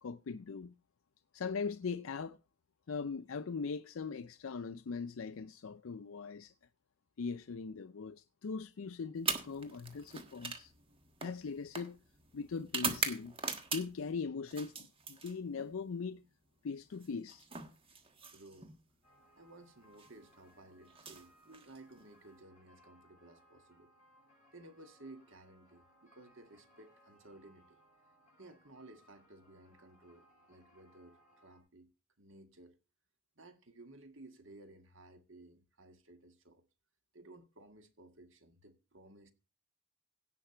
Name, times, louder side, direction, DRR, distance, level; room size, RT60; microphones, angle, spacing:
voice 1, 0.0-0.7 1.3-2.4 2.9-6.5 7.2-10.7 11.2-12.0 12.3-13.4 13.7-16.2 16.6-17.5, left 5 dB, 75° left, 0.5 m, -40 dB
Stepping On Glasses Close and Far, 9.2-14.1 14.5-15.7 16.9-18.8 19.8-20.1 20.9-22.0, right 5 dB, 25° right, 1.4 m, -41 dB
voice 2, 18.3-18.7 19.4-23.9 24.5-27.8 28.4-31.9 32.2-32.8 33.4-36.6 37.1-39.3, right 2 dB, 65° right, 1.8 m, -56 dB
sound 1, 19.0-31.6, equal, 35° left, 6.4 m, -67 dB
16.5 x 5.8 x 4.4 m
head